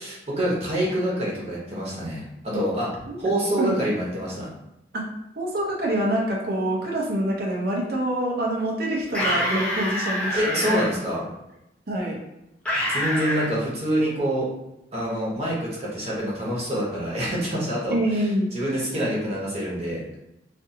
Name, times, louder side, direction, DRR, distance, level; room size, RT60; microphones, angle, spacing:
voice 1, 0.0-2.9 3.2-4.5 10.3-11.3 12.9-14.5 14.9-18.2 18.5-20.0, equal, 35° right, -5 dB, 1.0 m, -26 dB
voice 2, 5.4-10.8 11.9-12.2 17.9-18.5, right 1 dB, 60° right, -2 dB, 0.6 m, -26 dB
sound 1, 9.1-10.9 12.7-13.5, equal, 5° left, 0.6 m, -26 dB
2.5 x 2.5 x 2.7 m, 0.87 s
head